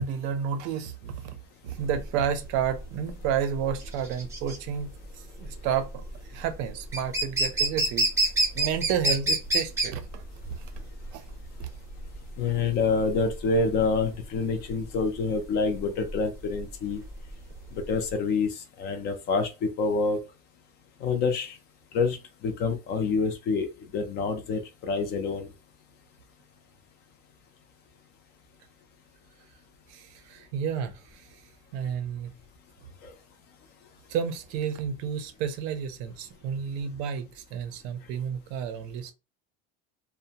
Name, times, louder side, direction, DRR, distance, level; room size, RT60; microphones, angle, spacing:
voice 1, 0.0-1.4 1.6-8.1 8.5-10.7 11.1-11.2 11.6-11.7 29.9-31.4 31.7-32.3 34.1-39.1, right 8 dB, 55° right, 0.5 m, -31 dB
sound 1, 1.8-18.1, right 2 dB, 10° right, 0.6 m, -29 dB
voice 2, 12.4-17.0 17.7-20.2 21.0-21.6 21.9-22.2 22.4-25.5 33.0-33.1, left 4 dB, 35° left, 0.5 m, -27 dB
2.7 x 2.1 x 2.8 m
cardioid pair, 165°, 29 cm